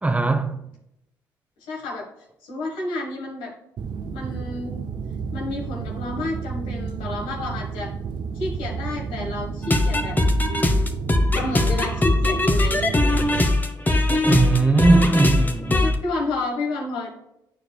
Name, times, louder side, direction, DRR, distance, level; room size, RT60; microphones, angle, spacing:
voice 1, 0.0-0.6 14.3-15.9, right 3 dB, 15° right, 0.8 m, -19 dB
voice 2, 1.7-2.1 2.4-3.5 4.1-4.8 5.3-7.9 8.3-10.2 10.5-10.9 11.3-13.2 15.8-17.1, left 2 dB, 85° left, 1.4 m, -30 dB
sound 1, 3.8-13.5, right 5 dB, 55° right, 0.5 m, -31 dB
sound 2, 9.6-16.0, left 2 dB, 20° left, 0.9 m, -21 dB
9.1 x 4.7 x 2.3 m
supercardioid pair, 60°, 9 cm